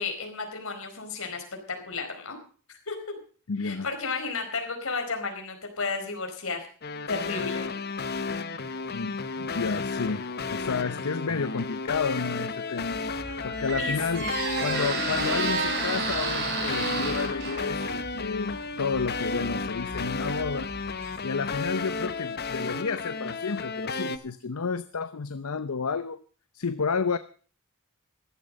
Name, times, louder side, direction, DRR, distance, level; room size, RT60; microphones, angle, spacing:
voice 1, 0.0-1.4 1.7-2.4 2.7-2.9 3.6-6.7 7.1-7.7 13.8-14.4, left 4 dB, 65° left, 4 dB, 4.6 m, -33 dB
voice 2, 3.5-3.9 8.9-13.0 13.4-14.3 14.6-20.7 21.2-26.2 26.5-27.2, left 5 dB, 85° left, 12 dB, 0.7 m, -31 dB
sound 1, 6.8-24.2, left 4 dB, 50° left, 1.1 m, -33 dB
Squeak, 12.9-21.7, right 3 dB, 50° right, 3.6 m, -32 dB
15.5 x 12.5 x 5.3 m, 0.41 s
head